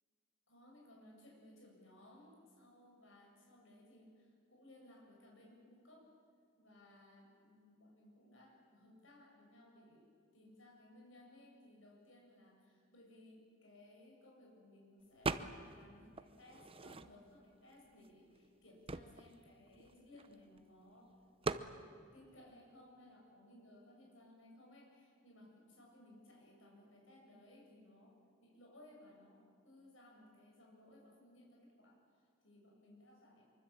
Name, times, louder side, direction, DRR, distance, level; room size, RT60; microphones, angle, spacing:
voice 1, 0.5-6.1 6.6-10.1 10.3-21.1 21.4-33.4, left 1 dB, 75° left, -1 dB, 7.6 m, -61 dB
sound 1, 15.2-15.8 16.2-17.4 18.0-18.1 18.4-20.6 21.4-21.7, right 3 dB, 30° right, 0.8 m, -41 dB
24.5 x 24.0 x 8.8 m, 2.3 s
head